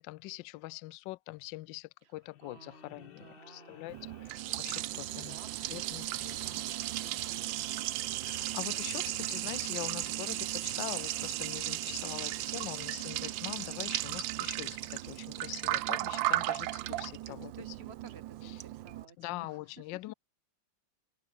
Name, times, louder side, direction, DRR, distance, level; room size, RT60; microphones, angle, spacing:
voice 1, 0.0-5.4 5.7-6.6 8.3-17.5 19.2-20.1, left 19 dB, 75° left, 1.2 m, -43 dB
sound 1, 2.2-14.5, left 6 dB, 40° left, 0.8 m, -58 dB
voice 2, 2.4-4.0 5.0-9.4 16.8-19.6, right 5 dB, 30° right, 2.1 m, -56 dB
Liquid, 3.9-19.1, right 16 dB, 75° right, 1.3 m, -35 dB
omnidirectional pair, 2.2 m